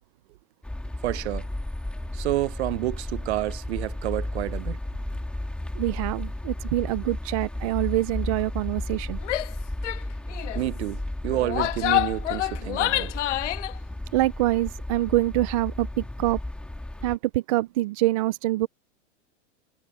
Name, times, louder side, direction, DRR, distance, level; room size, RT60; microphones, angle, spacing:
sound 1, 0.6-17.2, left 1 dB, 5° left, 2.9 m, -34 dB
voice 1, 1.0-1.5 2.1-4.8 10.5-13.1, right 16 dB, 60° right, 0.8 m, -29 dB
voice 2, 5.7-9.2 14.1-16.4 17.0-18.7, right 17 dB, 30° right, 0.4 m, -25 dB
Female speech woman speaking / Yell, 9.2-9.5 9.8-10.0 10.3-10.6 11.3-13.7, left 15 dB, 70° left, 1.5 m, -27 dB
supercardioid pair, 155°, 37 cm